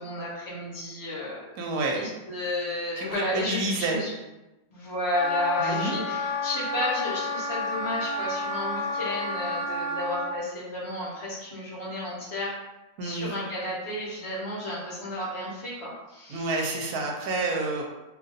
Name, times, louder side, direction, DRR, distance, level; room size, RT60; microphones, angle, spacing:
voice 1, 0.0-1.4 1.9-4.1 4.7-12.5 13.0-16.7, left 1 dB, 45° left, -6 dB, 1.1 m, -32 dB
voice 2, 1.6-2.0 3.0-4.0 5.6-6.0 13.0-13.3 16.3-17.8, right 2 dB, 75° right, 0 dB, 1.1 m, -29 dB
Wind instrument woodwind instrument, 5.1-10.3, left 3 dB, 75° left, 1.1 m, -30 dB
2.8 x 2.5 x 3.8 m, 1.0 s
omnidirectional pair, 1.7 m